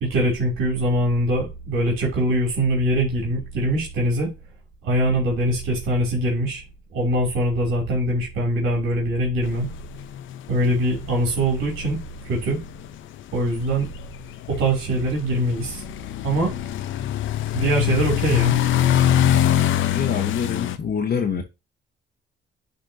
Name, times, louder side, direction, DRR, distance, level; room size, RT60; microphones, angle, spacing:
voice 1, 0.0-4.3 4.8-6.6 6.9-9.7 10.5-12.0 12.3-12.6 13.3-13.9 14.5-15.8 16.2-16.5 17.5-18.5, right 1 dB, 85° right, 2.7 m, -22 dB
sound 1, 9.4-20.8, left 12 dB, 80° left, 0.7 m, -24 dB
voice 2, 19.8-21.4, left 7 dB, 50° left, 1.2 m, -25 dB
10.5 x 4.2 x 2.7 m
cardioid pair, 90°, 20 cm